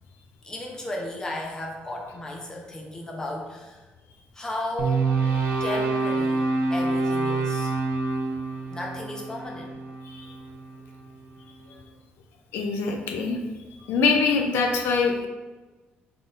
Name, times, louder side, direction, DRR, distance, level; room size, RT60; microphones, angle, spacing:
voice 1, 0.4-3.8 4.3-5.1 5.6-6.4 6.7-7.7 8.7-9.7, left 1 dB, 15° left, -1 dB, 0.6 m, -34 dB
sound 1, 4.8-11.0, right 3 dB, 70° right, 0.5 m, -27 dB
voice 2, 12.5-13.4 13.9-15.3, left 4 dB, 85° left, 3 dB, 0.5 m, -24 dB
3.8 x 3.8 x 2.5 m, 1.2 s
cardioid pair, 145°, 4 cm